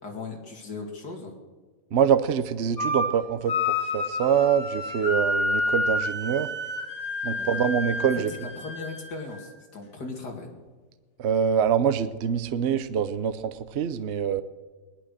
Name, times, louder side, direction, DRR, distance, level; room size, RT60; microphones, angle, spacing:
voice 1, 0.0-1.3 7.3-7.7 8.6-10.5, left 3 dB, 65° left, 2 dB, 3.0 m, -38 dB
voice 2, 1.9-6.5 7.2-8.3 11.2-14.4, right 8 dB, 60° right, 12 dB, 0.7 m, -25 dB
sound 1, 2.8-3.1 3.5-9.5, left 2 dB, 40° left, 2.0 m, -29 dB
18.0 x 11.5 x 6.7 m, 1.4 s
omnidirectional pair, 1.9 m